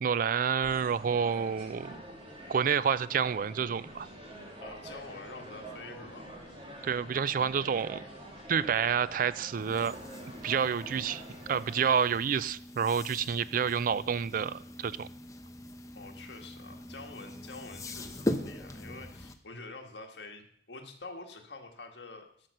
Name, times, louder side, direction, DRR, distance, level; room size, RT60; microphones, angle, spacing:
voice 1, 0.0-2.0 2.5-4.1 6.8-8.0 8.5-10.0 10.4-11.2 11.5-15.1, right 7 dB, 50° right, 0.4 m, -29 dB
sound 1, 0.6-11.9, right 1 dB, 30° right, 2.3 m, -46 dB
voice 2, 0.9-1.3 4.6-6.3 15.9-22.5, left 3 dB, 70° left, 1.6 m, -47 dB
sound 2, 9.5-19.3, left 1 dB, 20° left, 0.8 m, -41 dB
12.0 x 5.8 x 6.5 m
head